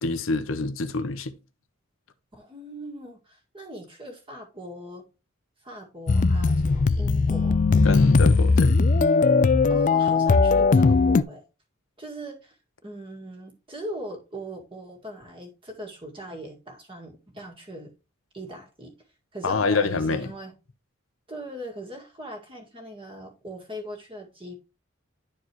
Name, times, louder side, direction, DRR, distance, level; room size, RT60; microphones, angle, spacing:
voice 1, 0.0-1.3 7.8-8.8 19.4-20.3, left 3 dB, 75° left, 0.8 m, -26 dB
voice 2, 2.3-5.1 5.6-7.6 9.7-11.4 12.0-12.6 12.8-17.9 18.3-18.9 19.3-20.5 21.3-24.5, right 1 dB, 25° right, 2.0 m, -40 dB
sound 1, 6.1-11.2, left 4 dB, 40° left, 0.3 m, -19 dB
11.0 x 4.6 x 3.0 m
head